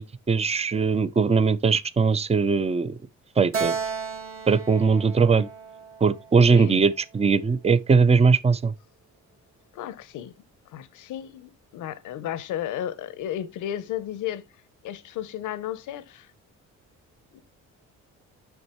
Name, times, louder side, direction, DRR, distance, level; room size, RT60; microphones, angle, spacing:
voice 1, 0.0-2.9 3.4-3.8 4.5-5.5 6.0-8.7, right 5 dB, 20° right, 0.6 m, -20 dB
Keyboard (musical), 3.5-7.0, right 5 dB, 45° right, 1.6 m, -34 dB
voice 2, 6.5-6.8 9.7-10.3 10.7-14.4 14.8-16.3 17.3-17.4, left 11 dB, 80° left, 0.9 m, -33 dB
8.1 x 6.4 x 3.0 m
cardioid pair, 90°, 30 cm